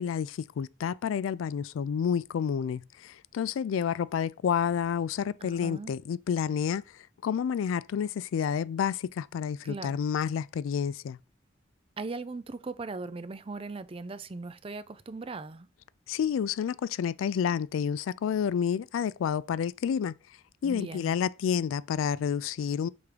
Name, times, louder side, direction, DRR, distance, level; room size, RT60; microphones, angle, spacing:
voice 1, 0.0-11.2 16.1-20.1 20.6-22.9, left 7 dB, 90° left, 0.3 m, -29 dB
voice 2, 5.4-5.9 9.6-10.0 12.0-15.7 20.6-21.2, right 3 dB, 30° right, 0.4 m, -39 dB
6.1 x 3.5 x 4.9 m
head